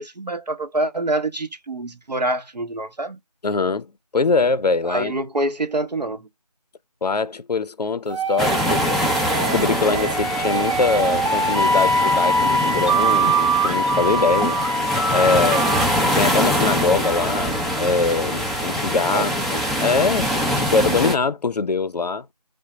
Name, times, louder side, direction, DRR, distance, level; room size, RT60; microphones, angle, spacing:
voice 1, 0.0-3.2 4.9-6.3 19.1-19.3, right 2 dB, 85° right, 0.8 m, -26 dB
voice 2, 3.4-5.1 7.0-9.0 9.3-14.6 15.1-15.7 16.2-20.3 20.6-22.3, left 4 dB, 75° left, 0.4 m, -23 dB
sound 1, 8.1-17.8, right 1 dB, 50° right, 0.8 m, -23 dB
sound 2, 8.4-21.1, equal, ahead, 0.3 m, -24 dB
3.7 x 2.0 x 2.9 m
figure-of-eight pair, 180°, 21 cm